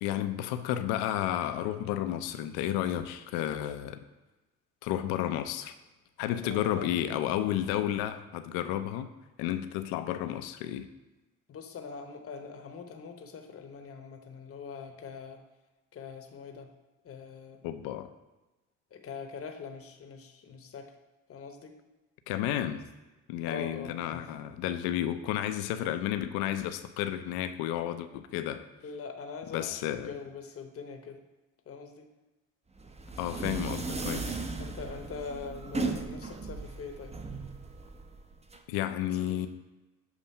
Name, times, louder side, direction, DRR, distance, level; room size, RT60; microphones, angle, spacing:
voice 1, 0.0-4.0 4.8-5.7 6.2-9.1 9.4-10.9 17.6-18.1 22.3-22.9 23.3-28.6 29.5-30.1 33.2-34.4 38.7-39.5, left 11 dB, 80° left, 10 dB, 0.6 m, -32 dB
voice 2, 6.4-6.9 11.5-15.4 15.9-16.7 17.0-17.6 18.9-20.9 21.3-21.7 23.5-24.3 28.8-31.2 31.7-32.1 34.6-37.1 39.3-39.5, left 5 dB, 40° left, 5 dB, 0.8 m, -43 dB
sound 1, 32.8-38.6, right 3 dB, 15° right, 0.6 m, -36 dB
7.2 x 2.7 x 5.4 m, 1.1 s
hypercardioid pair, 60°, 37 cm